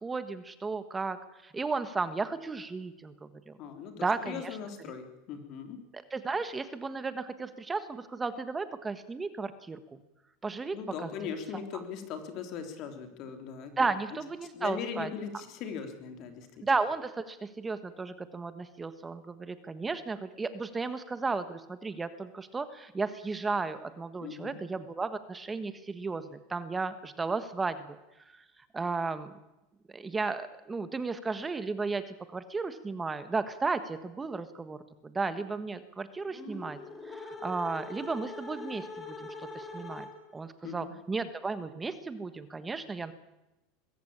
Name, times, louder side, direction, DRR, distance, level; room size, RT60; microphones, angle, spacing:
voice 1, 0.0-1.2 1.4-3.6 4.0-4.6 5.9-10.0 10.4-11.1 11.7-11.8 13.8-15.1 16.6-28.0 28.3-28.4 28.7-29.3 29.9-34.8 35.0-36.8 37.0-39.3 39.5-40.1 40.3-43.1, right 4 dB, 15° right, 11 dB, 1.4 m, -34 dB
voice 2, 3.6-5.8 10.7-13.7 14.5-16.6 24.2-24.6 40.6-40.9, left 7 dB, 50° left, 6 dB, 3.5 m, -39 dB
sound 1, 36.3-40.4, left 3 dB, 20° left, 4.1 m, -43 dB
22.0 x 15.0 x 8.7 m, 0.96 s
supercardioid pair, 135°, 0 cm